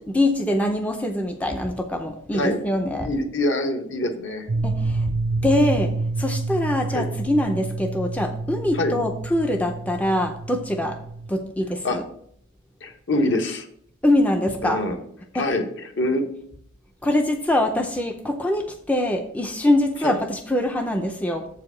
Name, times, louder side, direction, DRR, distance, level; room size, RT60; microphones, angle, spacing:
voice 1, 0.1-3.1 4.6-5.1 5.4-11.0 11.3-12.0 14.0-14.8 15.3-15.6 17.0-21.5, left 1 dB, 5° left, 4 dB, 0.5 m, -23 dB
voice 2, 3.0-4.5 6.9-7.1 8.7-9.0 11.8-12.0 12.8-13.6 14.6-15.0 15.3-16.3 20.0-20.2, left 1 dB, 60° left, 4 dB, 1.2 m, -25 dB
sound 1, 4.5-11.3, right 3 dB, 50° right, 0.6 m, -28 dB
7.3 x 4.9 x 7.0 m, 0.68 s
head